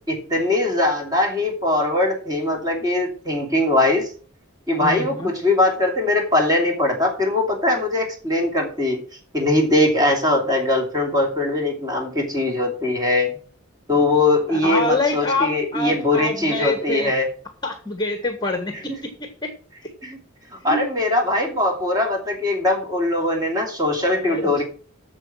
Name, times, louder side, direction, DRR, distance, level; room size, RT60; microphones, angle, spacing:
voice 1, 0.1-4.1 4.7-9.0 9.3-13.3 13.9-17.3 20.0-20.2 20.6-24.6, left 2 dB, 20° right, 1 dB, 2.9 m, -21 dB
voice 2, 4.8-5.3 14.5-17.1 17.6-19.5 19.8-19.9 20.6-20.8 24.2-24.6, left 2 dB, 20° left, 6 dB, 1.3 m, -26 dB
8.1 x 7.2 x 7.6 m, 0.42 s
head